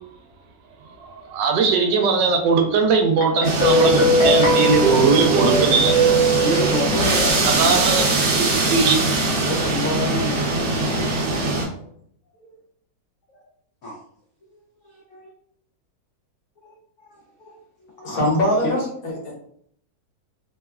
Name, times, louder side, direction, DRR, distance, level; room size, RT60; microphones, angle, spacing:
voice 1, 1.2-6.7 7.0-8.1 8.3-9.0, right 5 dB, 85° right, 4 dB, 1.2 m, -19 dB
Guitar, 3.2-6.0, left 2 dB, 50° left, 1.0 m, -21 dB
sound 1, 3.4-11.6, right 2 dB, 60° right, 1.0 m, -22 dB
voice 2, 6.4-8.2 9.3-10.3 11.7-11.8 13.3-13.4 13.8-14.0 14.8-15.3 16.6-17.6 18.0-18.3 18.6-18.8, left 1 dB, 85° left, -2 dB, 0.6 m, -28 dB
voice 3, 18.0-19.3, left 1 dB, 65° left, -3 dB, 1.4 m, -22 dB
3.3 x 2.1 x 2.3 m, 0.65 s
omnidirectional pair, 1.9 m